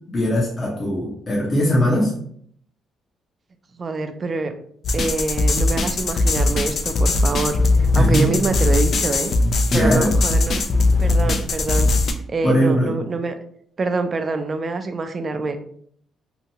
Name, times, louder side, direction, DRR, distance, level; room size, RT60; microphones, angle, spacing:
voice 1, 0.1-2.1 8.0-8.4 9.7-10.2 12.4-12.9, equal, 35° left, -4 dB, 0.7 m, -20 dB
voice 2, 3.8-4.5 4.9-7.6 7.9-9.3 9.7-10.6 11.0-11.9 12.3-13.3 13.8-15.6, right 3 dB, 40° right, 8 dB, 0.4 m, -25 dB
sound 1, 4.8-12.1, left 2 dB, 55° left, 0.3 m, -19 dB
2.8 x 2.2 x 2.7 m, 0.62 s
cardioid pair, 90°, 0 cm